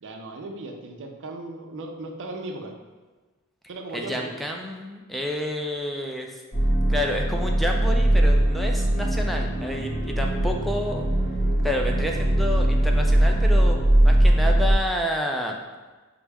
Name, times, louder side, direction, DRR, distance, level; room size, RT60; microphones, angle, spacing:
voice 1, 0.0-2.7 3.7-4.3, right 2 dB, 55° right, 2 dB, 0.5 m, -36 dB
voice 2, 3.9-6.3 6.9-11.1 11.6-15.6, equal, ahead, 1 dB, 0.3 m, -29 dB
sound 1, 6.5-14.7, right 1 dB, 35° left, 0.7 m, -21 dB
5.8 x 2.1 x 3.4 m, 1.3 s
head